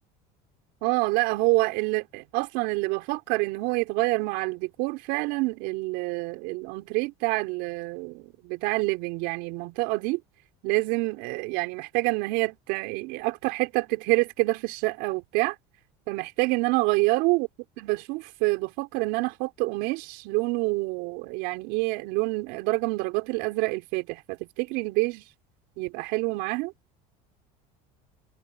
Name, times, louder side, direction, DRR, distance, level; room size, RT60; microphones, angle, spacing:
voice 1, 0.8-10.2 10.6-15.5 16.1-17.5 17.8-25.2 25.8-26.7, right 24 dB, 75° right, 5.0 m, -27 dB
supercardioid pair, 125°, 17 cm